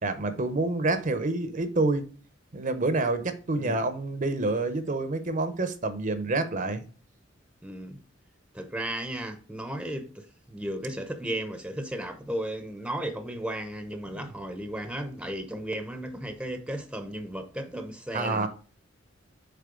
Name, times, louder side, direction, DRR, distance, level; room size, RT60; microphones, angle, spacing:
voice 1, 0.0-2.0 2.5-6.9 14.1-14.2 18.1-18.5, right 2 dB, 40° right, 0.8 m, -28 dB
voice 2, 7.6-8.0 8.5-18.5, right 1 dB, 5° right, 0.8 m, -35 dB
6.8 x 4.2 x 3.8 m
head